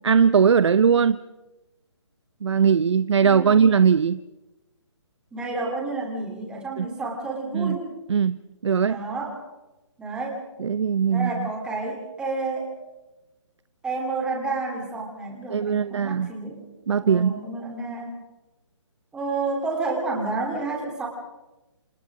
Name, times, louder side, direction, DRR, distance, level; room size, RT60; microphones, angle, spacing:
voice 1, 0.0-1.2 2.4-4.2 6.8-6.9 7.5-7.8 8.1-9.0 10.6-11.5 15.5-16.3 16.9-17.3, right 6 dB, 65° right, 14 dB, 0.7 m, -20 dB
voice 2, 3.2-3.7 5.3-7.9 8.8-9.4 10.0-10.4 11.1-12.8 13.8-16.6 17.0-18.1 19.1-21.1, right 3 dB, 5° right, -1 dB, 3.7 m, -30 dB
28.0 x 28.0 x 3.9 m, 1.0 s
hypercardioid pair, 165°, 16 cm